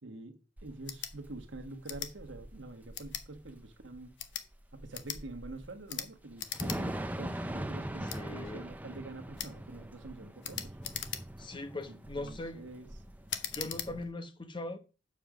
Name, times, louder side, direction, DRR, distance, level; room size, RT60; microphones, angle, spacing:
voice 1, 0.0-4.1 4.7-10.8 11.9-12.9, right 2 dB, 85° right, 1.3 m, -46 dB
Thunder / Rain, 0.6-14.0, right 1 dB, 10° right, 0.6 m, -42 dB
sound 1, 0.8-1.1 1.8-2.1 2.9-3.3 4.1-4.5 4.9-5.2 5.9-6.1 6.4-6.8 7.1-7.2 8.1-8.2 9.4-9.6 10.4-11.5 12.0-12.4 13.3-13.9, left 10 dB, 70° left, 0.9 m, -39 dB
voice 2, 8.1-8.7 11.4-12.6 13.5-14.8, left 2 dB, 25° left, 0.9 m, -40 dB
7.1 x 5.1 x 6.0 m
head